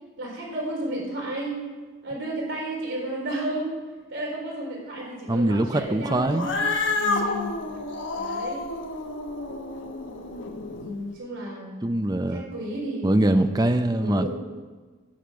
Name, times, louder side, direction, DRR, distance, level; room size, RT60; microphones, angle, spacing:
voice 1, 0.2-1.5 2.0-3.7 4.1-7.5 8.1-8.6 10.8-11.8 12.3-13.6 14.0-14.3, right 1 dB, 75° right, -4 dB, 4.5 m, -32 dB
voice 2, 5.3-6.5 11.8-12.5 13.0-14.3, right 1 dB, 20° right, 9 dB, 0.5 m, -23 dB
Cat, 6.3-10.9, left 3 dB, 65° left, 1.1 m, -29 dB
10.0 x 8.0 x 7.6 m, 1.4 s
head